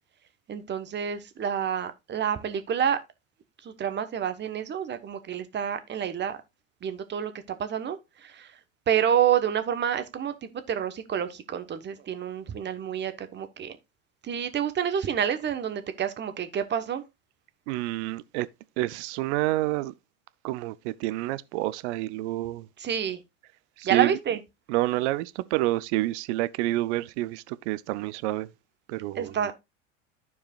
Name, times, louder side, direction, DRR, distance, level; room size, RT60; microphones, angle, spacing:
voice 1, 0.5-3.0 3.6-6.4 6.8-8.5 8.9-13.8 14.2-17.0 22.8-23.2 23.8-24.4 29.2-29.5, right 9 dB, 30° right, 1.1 m, -28 dB
voice 2, 17.7-18.5 18.8-19.9 20.4-22.7 23.8-24.2 24.7-28.5 28.9-29.4, right 17 dB, 60° right, 0.7 m, -28 dB
14.0 x 4.8 x 2.4 m
hypercardioid pair, 95°, 38 cm